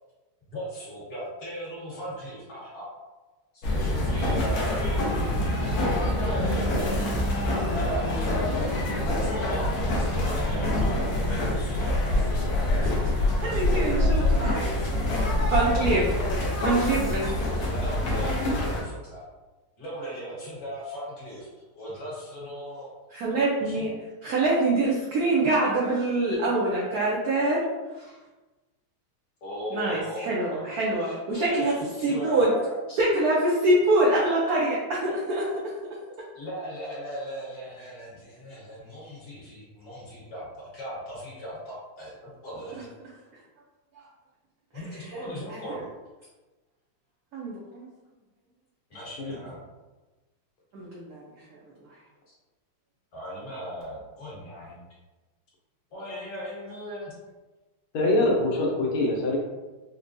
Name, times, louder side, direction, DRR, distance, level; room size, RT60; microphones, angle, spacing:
voice 1, 0.5-2.9 3.8-5.1 5.8-8.7 9.2-12.6 13.5-15.3 16.4-16.6 17.0-19.2 19.8-21.5 21.8-22.9 23.6-24.0 25.6-25.7 29.4-30.7 31.0-32.7 36.3-42.9 44.7-45.8 48.1-48.2 48.9-49.6 53.1-54.8 55.9-57.1, equal, 50° left, -7 dB, 1.7 m, -38 dB
sound 1, 3.6-18.8, left 1 dB, 65° left, 1.0 m, -25 dB
voice 2, 12.8-13.1 13.4-14.5 15.5-16.1 16.5-17.3 23.1-23.9 24.2-27.6 27.9-28.1 29.7-31.7 32.0-32.5 32.9-35.5 44.0-44.1 47.3-47.9 50.7-51.2, right 2 dB, 85° right, -5 dB, 0.8 m, -25 dB
voice 3, 57.9-59.4, left 2 dB, 80° left, -2 dB, 1.6 m, -24 dB
4.3 x 2.2 x 2.6 m, 1.2 s
omnidirectional pair, 2.3 m